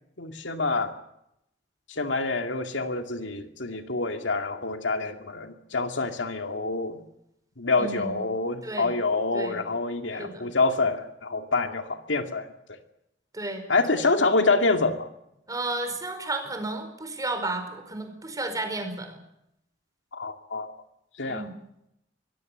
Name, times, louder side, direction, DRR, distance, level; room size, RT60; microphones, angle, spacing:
voice 1, 0.2-0.9 1.9-7.0 7.6-12.8 13.7-15.1 20.1-20.7 21.2-21.5, left 3 dB, 85° left, 6 dB, 2.3 m, -27 dB
voice 2, 7.8-8.2 8.6-8.9 9.3-9.6 10.2-10.5 13.3-13.6 15.5-19.2 21.2-21.5, right 2 dB, 20° right, 6 dB, 4.7 m, -32 dB
24.0 x 17.0 x 8.0 m, 0.81 s
head